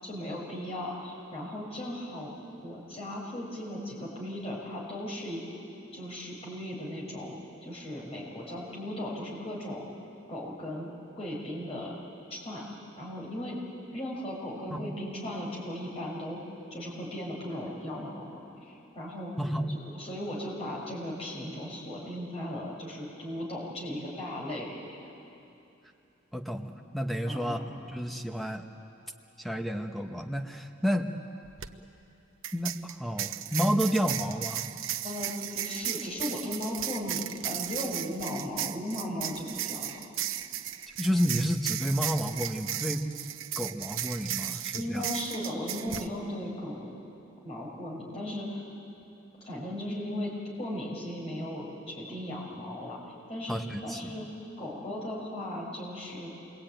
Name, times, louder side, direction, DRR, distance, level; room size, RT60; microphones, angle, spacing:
voice 1, 0.0-2.3 2.6-5.4 5.9-7.3 7.6-9.8 10.3-10.9 11.2-12.0 12.3-12.6 13.0-13.6 13.9-16.4 16.7-19.3 19.7-24.8 27.3-27.6 35.0-40.0 44.5-46.9 47.4-48.7 49.4-50.3 50.6-54.3 54.6-56.3, left 1 dB, 30° left, -4 dB, 5.9 m, -37 dB
voice 2, 19.4-19.7 26.3-28.6 29.4-31.1 32.5-34.7 41.0-43.1 43.6-45.1 53.5-54.1, equal, ahead, 4 dB, 1.1 m, -30 dB
sound 1, 31.4-31.7 32.4-46.1, right 11 dB, 80° right, 0.9 m, -35 dB
27.5 x 22.5 x 9.1 m, 2.8 s
head